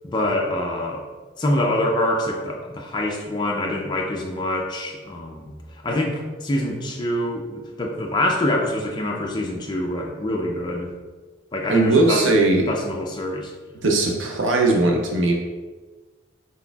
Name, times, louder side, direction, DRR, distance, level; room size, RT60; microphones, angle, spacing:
voice 1, 0.0-1.1 1.4-5.5 5.8-10.9 11.5-12.3 12.7-13.5, left 1 dB, 25° left, 0 dB, 0.4 m, -25 dB
voice 2, 11.7-12.6 13.8-15.3, right 2 dB, 70° right, 1 dB, 0.6 m, -19 dB
4.1 x 3.8 x 2.3 m, 1.3 s
head